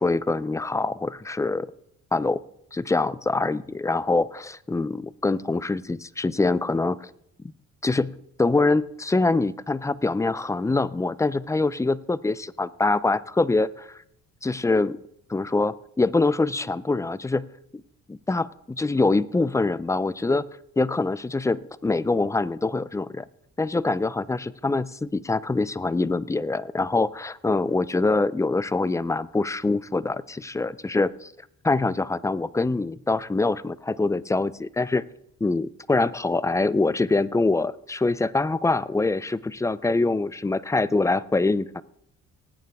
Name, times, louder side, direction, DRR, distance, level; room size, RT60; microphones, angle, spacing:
voice 1, 0.0-1.7 2.1-2.4 2.7-7.1 7.8-8.1 8.4-14.0 14.4-15.0 15.3-17.5 18.1-20.5 20.8-23.2 23.6-31.3 31.6-35.0 35.4-41.8, left 3 dB, 10° left, 17 dB, 0.4 m, -24 dB
18.5 x 9.4 x 3.5 m, 0.74 s
cardioid pair, 90°, 30 cm